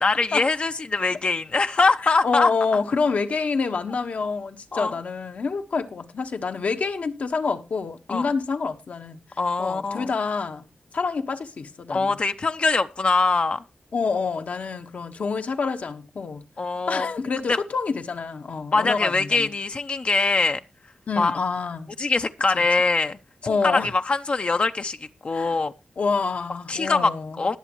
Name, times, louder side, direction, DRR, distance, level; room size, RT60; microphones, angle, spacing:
voice 1, 0.0-2.5 4.7-4.9 8.1-8.3 9.4-10.1 11.9-13.6 16.6-17.1 17.5-17.6 18.7-20.6 21.2-21.4 22.0-23.2 23.6-25.0 25.2-25.7 26.7-27.1 27.4-27.6, left 3 dB, 50° left, 0.6 m, -22 dB
voice 2, 2.0-9.2 9.6-10.6 10.9-12.2 13.9-16.4 16.9-19.5 21.1-21.9 22.5-22.6 23.4-23.9 25.3-25.6 26.0-27.4, left 4 dB, 75° left, 1.3 m, -27 dB
20.0 x 7.3 x 3.0 m
wide cardioid pair, 85°, 3 cm